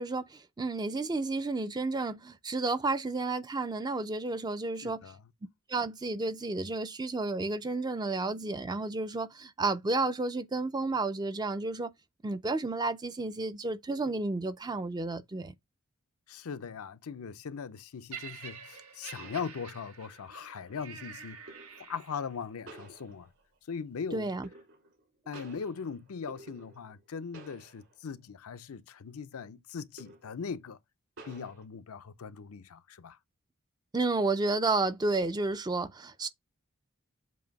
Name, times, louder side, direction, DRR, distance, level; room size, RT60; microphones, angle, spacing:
voice 1, 0.0-5.0 5.7-11.9 12.2-15.5 24.1-24.5 33.9-36.3, right 3 dB, 20° right, 0.4 m, -31 dB
voice 2, 4.8-5.2 16.3-21.4 21.8-23.3 23.7-24.3 25.3-30.8 31.2-33.2, left 6 dB, 75° left, 0.5 m, -40 dB
Laughter, 18.1-22.4 23.2-23.3, right 6 dB, 80° right, 1.3 m, -47 dB
sound 1, 18.6-18.7 19.2-20.1 21.5-22.0 22.7-23.6 24.4-25.0 25.3-27.1 27.3-28.1 28.5-28.6 30.0-30.5 31.2-31.6, right 2 dB, 60° right, 2.9 m, -52 dB
7.7 x 2.7 x 5.1 m
head